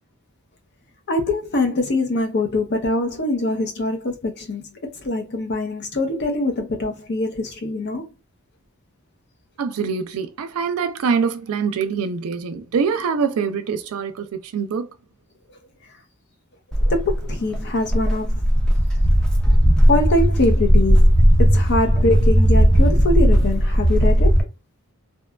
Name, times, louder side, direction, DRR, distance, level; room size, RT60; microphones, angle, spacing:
voice 1, 1.1-8.1 16.8-18.4 19.9-21.1 21.4-24.5, left 2 dB, 50° left, 0.6 m, -23 dB
voice 2, 9.6-14.9, right 6 dB, 75° right, 0.4 m, -24 dB
Walk footsteps, 16.7-24.4, equal, 5° left, 0.3 m, -16 dB
2.8 x 2.2 x 2.2 m
head